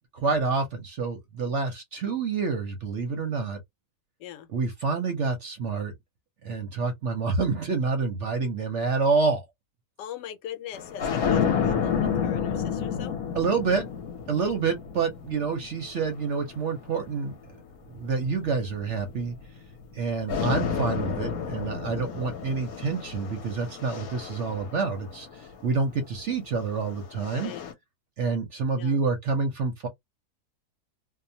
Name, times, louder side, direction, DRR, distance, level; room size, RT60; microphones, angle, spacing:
voice 1, 0.1-3.6 4.5-5.9 6.4-9.4 13.3-13.9 14.3-17.3 17.9-19.4 19.9-27.5 28.2-29.9, right 4 dB, 60° right, 0.8 m, -28 dB
voice 2, 10.0-13.2 27.3-27.7 28.7-29.0, left 10 dB, 80° left, 1.2 m, -40 dB
sound 1, 10.7-17.3 18.1-19.9 20.3-25.6 26.6-27.7, left 7 dB, 65° left, 1.1 m, -31 dB
2.8 x 2.1 x 2.7 m
omnidirectional pair, 1.9 m